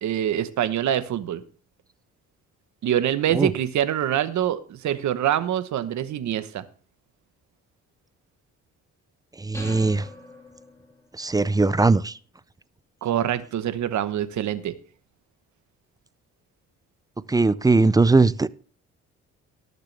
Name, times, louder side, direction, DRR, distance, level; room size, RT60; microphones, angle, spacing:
voice 1, 0.0-1.4 2.8-6.6 13.0-14.7, right 11 dB, 70° right, 12 dB, 1.1 m, -25 dB
voice 2, 9.4-10.0 11.2-12.1 17.3-18.5, right 3 dB, 15° right, 18 dB, 0.4 m, -19 dB
sound 1, 9.5-11.2, equal, 10° left, 3.6 m, -42 dB
18.5 x 6.7 x 3.4 m, 0.41 s
cardioid pair, 90°, 30 cm